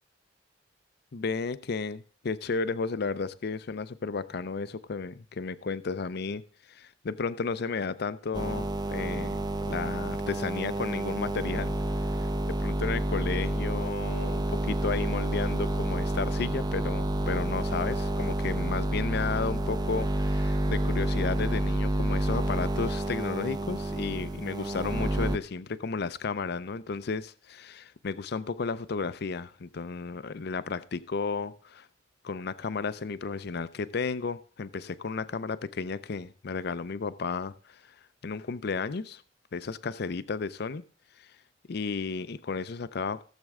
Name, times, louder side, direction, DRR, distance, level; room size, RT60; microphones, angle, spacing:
voice 1, 1.1-9.4 9.7-11.7 12.1-31.9 32.2-38.0 38.2-39.2 39.5-40.8 41.2-41.3 41.7-43.2, left 4 dB, 60° left, 0.5 m, -33 dB
sound 1, 8.3-25.4, right 1 dB, 25° right, 0.6 m, -29 dB
15.5 x 7.4 x 3.6 m
head